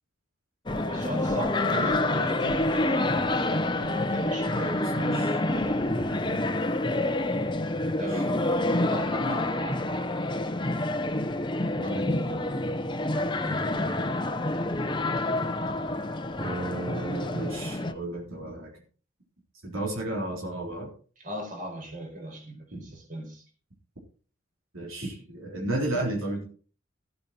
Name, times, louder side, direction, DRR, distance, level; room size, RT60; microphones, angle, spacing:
sound 1, 0.7-17.9, left 2 dB, 25° left, 0.8 m, -28 dB
voice 1, 0.8-6.5 8.0-8.4 8.9-9.9 13.4-13.9 21.2-23.4, right 1 dB, 40° right, 2 dB, 4.5 m, -38 dB
voice 2, 1.7-2.3 4.5-5.3 11.7-12.6 16.4-18.7 19.6-20.9 22.7-22.9 24.7-26.4, right 1 dB, 80° right, 0 dB, 3.9 m, -33 dB
14.5 x 8.6 x 4.5 m, 0.40 s
head